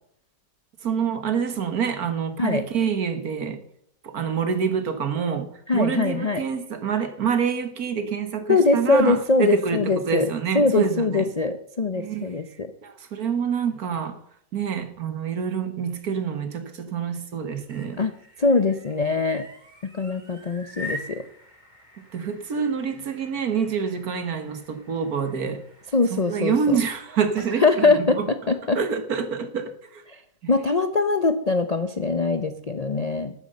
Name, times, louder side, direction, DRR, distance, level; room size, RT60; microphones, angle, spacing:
voice 1, 0.8-3.6 4.0-11.3 12.0-12.3 12.8-14.2 14.5-18.0 22.1-25.6 26.1-28.3 28.8-30.0, right 6 dB, 60° right, 9 dB, 1.8 m, -26 dB
voice 2, 5.7-6.4 8.5-10.3 10.5-12.7 18.0-18.1 18.4-19.4 19.9-21.2 25.9-26.8 27.6-28.8 30.5-33.3, left 3 dB, 45° left, 10 dB, 0.5 m, -22 dB
sound 1, 17.4-27.6, left 1 dB, 25° right, 2.8 m, -44 dB
12.5 x 9.5 x 6.6 m, 0.69 s
omnidirectional pair, 1.8 m